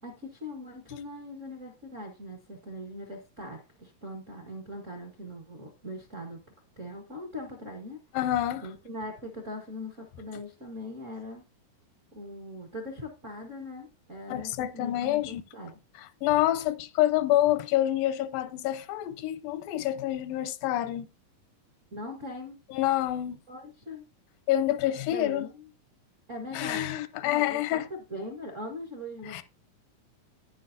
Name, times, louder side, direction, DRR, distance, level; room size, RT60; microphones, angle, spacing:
voice 1, 0.0-6.4 6.8-8.0 8.6-11.4 12.1-15.8 21.9-22.6 23.5-24.0 25.1-25.7 26.3-26.9 27.3-29.4, left 1 dB, 50° right, 0.9 m, -41 dB
voice 2, 8.1-8.7 14.3-15.4 16.0-21.1 22.7-23.4 24.5-25.5 26.5-27.8 29.2-29.4, left 13 dB, 85° left, 2.3 m, -27 dB
9.7 x 9.6 x 2.7 m
omnidirectional pair, 4.0 m